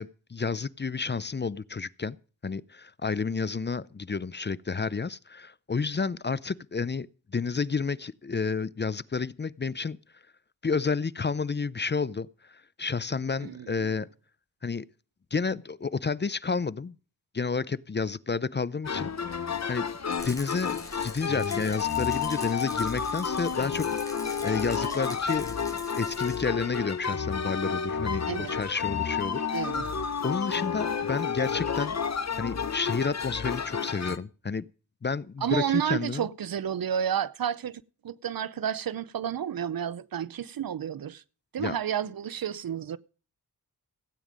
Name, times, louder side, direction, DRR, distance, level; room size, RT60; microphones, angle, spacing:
voice 1, 0.0-2.2 2.4-10.0 10.6-14.1 14.6-14.9 15.3-17.0 17.3-19.9 20.2-23.9 24.1-29.7 30.2-32.0 32.4-34.6 35.0-36.3 41.6-41.8, left 5 dB, 30° left, 0.6 m, -31 dB
voice 2, 13.4-13.9 28.3-28.6 29.5-29.9 35.4-41.2 41.5-43.0, right 9 dB, 70° right, 0.7 m, -31 dB
sound 1, 18.8-34.2, left 6 dB, 45° left, 1.1 m, -31 dB
Rattle, 20.2-26.4, left 1 dB, 10° left, 4.0 m, -44 dB
16.0 x 9.2 x 5.1 m
wide cardioid pair, 80°, 37 cm